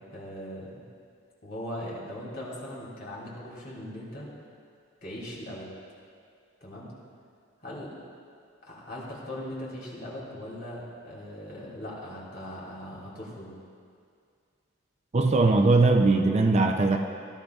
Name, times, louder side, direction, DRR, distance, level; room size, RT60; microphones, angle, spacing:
voice 1, 0.1-0.8 1.4-4.3 5.0-5.7 6.6-6.9 7.6-8.0 8.6-13.5, left 1 dB, 45° left, -5 dB, 2.7 m, -39 dB
voice 2, 15.1-17.0, right 3 dB, 30° right, 4 dB, 0.4 m, -20 dB
17.0 x 12.0 x 2.4 m, 2.3 s
head